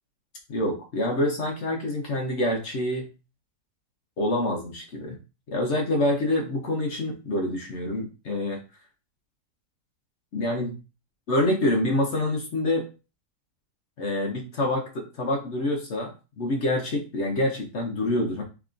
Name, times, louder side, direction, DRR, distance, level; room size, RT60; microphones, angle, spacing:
voice 1, 0.5-3.1 4.2-5.2 5.5-8.6 10.3-10.8 11.3-12.9 14.0-18.4, left 1 dB, 50° left, 2 dB, 1.0 m, -26 dB
4.0 x 3.4 x 2.5 m, 0.31 s
omnidirectional pair, 1.8 m